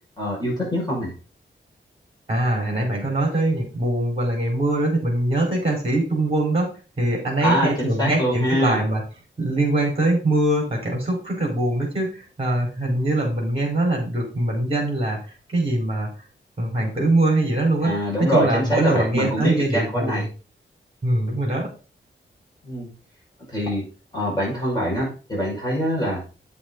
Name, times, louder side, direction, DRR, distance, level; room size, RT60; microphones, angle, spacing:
voice 1, 0.2-1.1 7.4-8.9 12.8-13.0 17.8-20.3 22.6-22.9 23.5-23.9 24.1-26.2, equal, 20° left, -5 dB, 5.6 m, -24 dB
voice 2, 2.3-6.7 7.0-9.0 9.4-15.2 15.5-16.1 16.6-20.3 21.0-21.7, right 1 dB, 30° right, -1 dB, 4.4 m, -22 dB
8.8 x 7.1 x 3.9 m, 0.35 s
wide cardioid pair, 125°, 20 cm